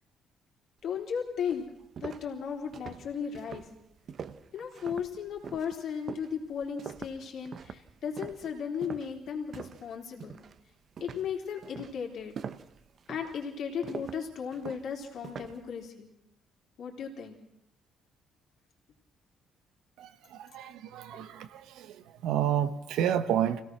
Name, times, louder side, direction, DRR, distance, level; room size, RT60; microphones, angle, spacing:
voice 1, 0.8-1.7 2.0-3.7 4.5-10.4 11.0-12.4 13.1-16.1 16.8-17.4 21.1-21.3, left 7 dB, 60° left, 3.7 m, -36 dB
sound 1, 1.0-1.1 1.5-9.9 10.2-10.6 11.0-15.7, right 7 dB, 45° right, 0.8 m, -44 dB
voice 2, 20.0-22.0 22.2-23.6, right 10 dB, 85° right, 1.3 m, -30 dB
25.5 x 17.5 x 6.2 m
cardioid pair, 145°, 0 cm